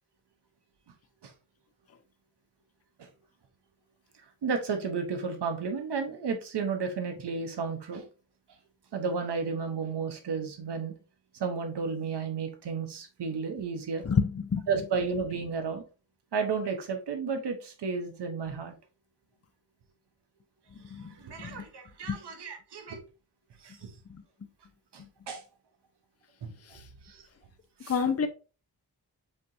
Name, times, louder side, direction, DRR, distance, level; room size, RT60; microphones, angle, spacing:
voice 1, 4.4-8.0 8.9-10.9 11.4-14.0 14.7-15.8 16.3-18.7 21.2-23.0 23.6-23.9 24.9-25.4 26.4-26.5 27.1-27.2 27.8-28.1, right 5 dB, 90° right, 1.0 m, -32 dB
voice 2, 14.0-14.7 20.9-21.1 21.4-21.6 22.1-22.2 27.9-28.3, left 6 dB, 40° left, 0.7 m, -28 dB
6.9 x 2.9 x 2.6 m
cardioid pair, 50°, 40 cm